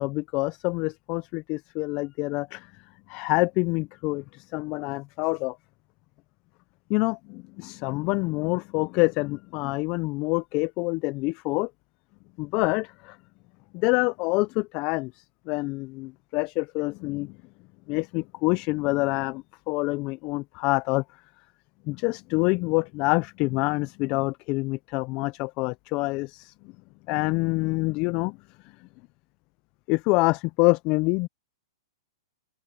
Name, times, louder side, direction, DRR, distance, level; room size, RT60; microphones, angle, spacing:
voice 1, 0.0-2.7 3.1-5.6 6.9-11.7 12.4-13.2 13.7-17.3 17.9-21.0 21.9-26.5 27.1-28.4 29.9-31.3, left 25 dB, 40° left, 0.6 m, -26 dB
open air
hypercardioid pair, 130°, 2 cm